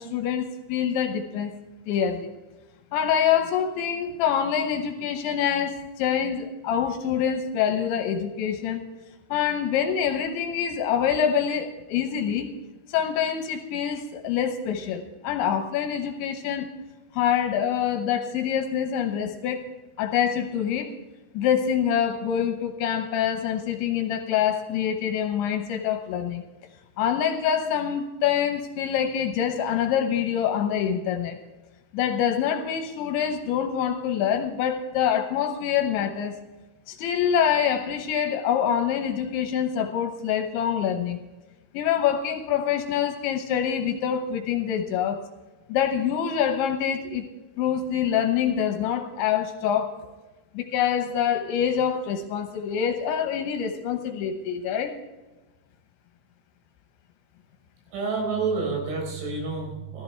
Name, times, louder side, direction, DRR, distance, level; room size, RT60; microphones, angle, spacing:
voice 1, 0.0-1.5 1.9-2.3 2.9-8.8 9.3-12.5 12.9-16.7 17.1-19.6 20.0-20.9 21.3-26.4 27.0-31.4 31.9-36.4 36.9-41.2 41.7-45.2 45.7-47.2 47.6-49.9 50.5-55.0, left 8 dB, 75° left, 6 dB, 3.0 m, -25 dB
voice 2, 57.9-60.0, right 4 dB, 80° right, 1 dB, 6.8 m, -29 dB
15.0 x 14.0 x 3.4 m, 1.1 s
omnidirectional pair, 5.8 m